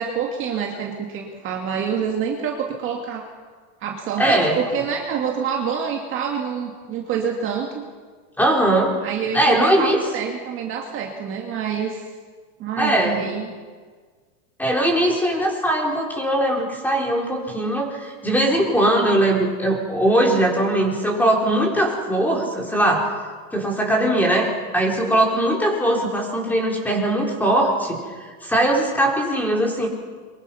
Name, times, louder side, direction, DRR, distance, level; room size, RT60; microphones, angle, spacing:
voice 1, 0.0-3.2 3.8-7.8 9.0-12.1 12.6-13.5, right 7 dB, 30° right, 0 dB, 2.3 m, -27 dB
voice 2, 4.2-4.6 8.4-8.9 9.3-10.0 12.8-13.2 14.6-23.1 23.5-24.5 24.7-28.0 28.4-29.9, right 1 dB, 5° left, 0 dB, 4.3 m, -20 dB
24.0 x 23.5 x 5.7 m, 1.5 s
supercardioid pair, 150°, 42 cm